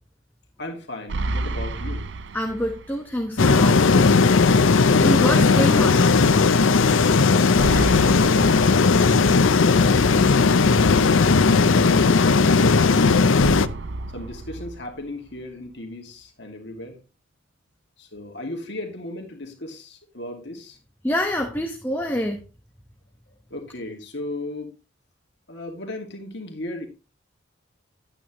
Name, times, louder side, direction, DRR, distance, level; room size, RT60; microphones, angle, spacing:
voice 1, 0.6-2.1 14.1-17.0 18.0-20.8 23.5-24.7 25.5-26.9, left 1 dB, 60° left, 2.4 m, -36 dB
sound 1, 1.1-3.1 3.4-3.5 7.6-9.6 13.4-15.4, right 2 dB, 60° right, 0.6 m, -31 dB
voice 2, 2.3-4.1 5.0-6.1 21.0-22.4, equal, 10° left, 1.2 m, -26 dB
sound 2, 3.4-13.7, left 4 dB, 80° left, 0.6 m, -17 dB
12.0 x 9.1 x 3.1 m
head